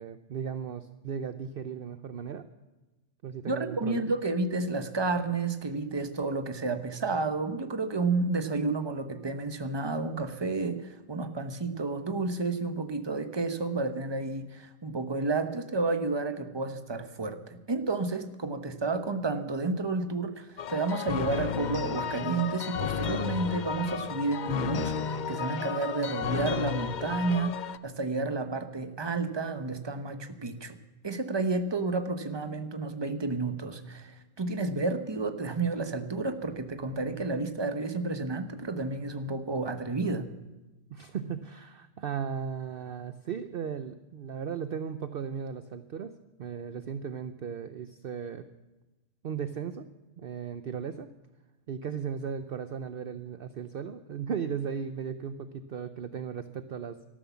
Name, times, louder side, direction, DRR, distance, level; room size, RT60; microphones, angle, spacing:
voice 1, 0.0-2.5 3.2-4.2 40.9-46.1 46.4-48.5 49.2-49.9 50.2-51.1 51.7-57.0, right 7 dB, 55° right, 11 dB, 0.8 m, -36 dB
voice 2, 3.5-30.8 31.0-40.3, right 3 dB, 20° right, 9 dB, 1.0 m, -31 dB
sound 1, 20.6-27.8, left 8 dB, 55° left, 0.5 m, -33 dB
13.0 x 12.5 x 7.1 m, 1.1 s
omnidirectional pair, 1.3 m